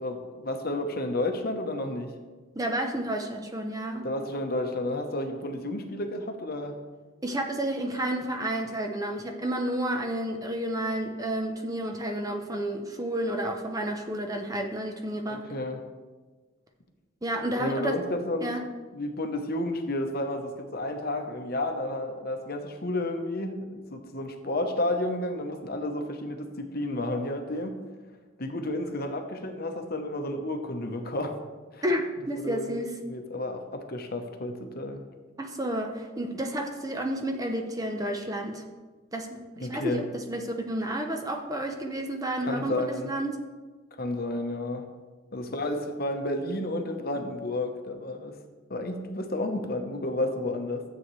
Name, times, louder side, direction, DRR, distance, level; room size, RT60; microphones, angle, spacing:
voice 1, 0.0-2.1 4.0-6.8 15.3-15.8 17.6-18.5 18.9-27.8 28.4-31.3 31.7-31.8 32.3-32.7 33.0-35.0 39.6-40.0 42.4-43.1 43.9-44.9 45.3-48.4 48.7-50.8, left 1 dB, 45° left, 5 dB, 0.9 m, -31 dB
voice 2, 2.6-4.1 7.2-15.4 17.2-18.0 18.4-18.6 31.8-32.9 35.4-38.6 39.1-39.3 39.6-43.3, right 1 dB, 15° right, 4 dB, 0.7 m, -31 dB
13.0 x 8.0 x 3.2 m, 1.3 s
head